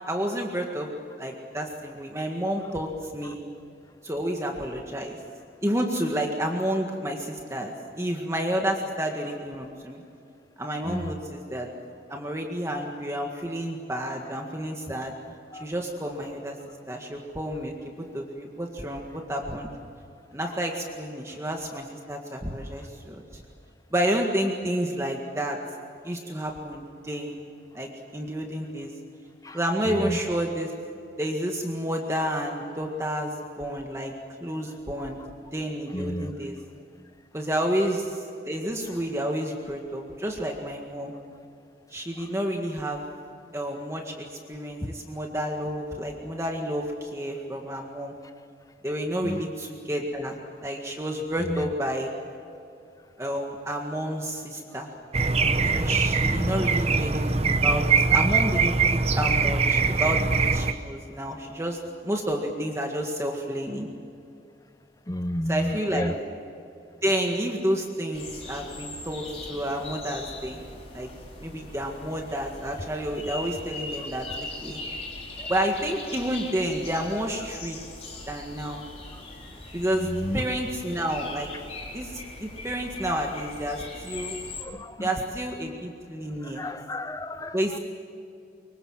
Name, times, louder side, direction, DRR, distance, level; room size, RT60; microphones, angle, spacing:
voice 1, 0.1-0.9 1.2-3.4 4.0-5.2 5.6-10.0 10.6-11.7 12.1-15.1 15.5-16.6 16.9-19.7 20.3-23.4 23.9-25.6 26.0-27.4 27.7-28.9 29.5-30.7 31.2-34.1 34.4-35.2 35.5-36.6 37.3-41.1 41.9-43.0 43.5-48.1 48.8-52.1 53.2-54.9 55.7-57.8 58.1-63.9 65.5-66.1 67.0-70.6 70.9-71.1 71.4-74.8 75.5-77.8 78.3-78.8 79.7-81.5 81.9-84.4 85.0-86.6 87.5-87.8, equal, 15° right, 1 dB, 1.8 m, -30 dB
voice 2, 29.8-30.2 35.9-36.3 44.8-44.9 49.2-49.4 51.4-51.7 56.3-56.7 65.1-66.1 75.4-75.5 80.0-80.4 84.6-85.1 86.4-87.8, left 1 dB, 20° left, 11 dB, 0.7 m, -31 dB
sound 1, 55.1-60.7, right 4 dB, 35° right, 0.9 m, -22 dB
sound 2, 68.1-84.6, left 2 dB, 35° left, 4.8 m, -40 dB
25.0 x 23.0 x 7.4 m, 2.6 s
head